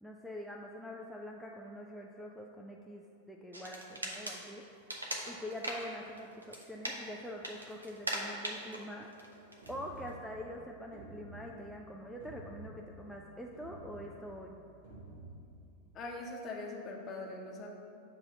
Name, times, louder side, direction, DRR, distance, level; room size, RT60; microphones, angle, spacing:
voice 1, 0.0-4.7 5.3-9.1 9.7-14.6, left 1 dB, ahead, 0 dB, 0.4 m, -45 dB
sound 1, 3.5-10.1, right 1 dB, 80° right, 0.7 m, -42 dB
sound 2, 9.6-16.0, right 2 dB, 55° right, 1.2 m, -52 dB
voice 2, 15.9-17.7, left 2 dB, 30° left, -1 dB, 1.0 m, -42 dB
7.4 x 2.9 x 6.0 m, 2.5 s
figure-of-eight pair, 90°, 0 cm